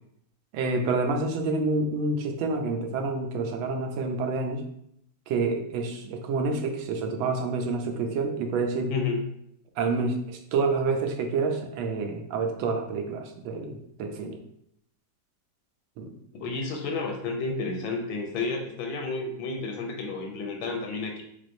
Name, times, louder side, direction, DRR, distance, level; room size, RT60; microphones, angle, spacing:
voice 1, 0.5-4.6 5.3-8.9 9.8-14.4 16.0-16.1, right 3 dB, 85° right, 4 dB, 1.4 m, -28 dB
voice 2, 8.9-9.3 16.3-21.2, left 3 dB, 85° left, 2 dB, 1.3 m, -31 dB
3.4 x 3.4 x 2.6 m, 0.75 s
omnidirectional pair, 2.1 m